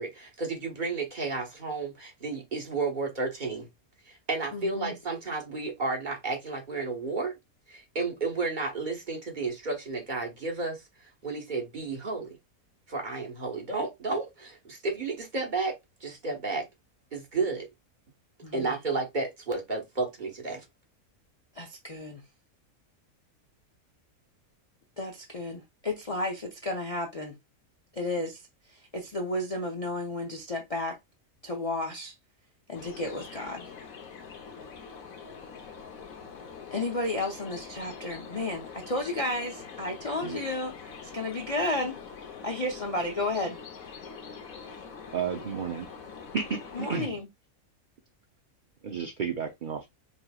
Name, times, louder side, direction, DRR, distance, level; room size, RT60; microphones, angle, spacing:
voice 1, 0.0-3.7 4.1-7.3 7.7-12.4 12.9-15.7 16.0-16.6 17.1-17.7 18.5-20.6, right 3 dB, 35° right, 1.3 m, -32 dB
voice 2, 4.5-4.9 18.4-18.7 21.5-22.2 25.0-27.4 27.9-28.4 28.7-31.0 31.4-32.1 32.7-33.7 36.7-42.0 42.4-43.6 46.7-47.3, left 2 dB, 35° left, 0.5 m, -32 dB
sound 1, 32.7-47.1, left 6 dB, 70° left, 1.3 m, -44 dB
voice 3, 45.1-45.9 46.3-47.2 48.8-49.9, right 6 dB, 50° right, 0.6 m, -32 dB
5.6 x 3.0 x 2.3 m
omnidirectional pair, 1.6 m